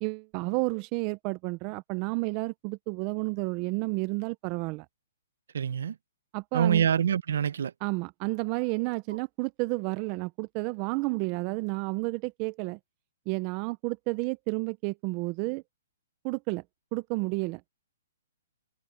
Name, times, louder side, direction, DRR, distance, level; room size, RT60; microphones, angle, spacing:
voice 1, 0.0-4.9 6.3-6.8 7.8-12.8 13.3-15.6 16.2-16.6 16.9-17.6, right 25 dB, 25° right, 0.5 m, -31 dB
voice 2, 5.5-6.0 6.5-7.7, right 8 dB, 70° right, 0.9 m, -25 dB
hypercardioid pair, 165°, 0 cm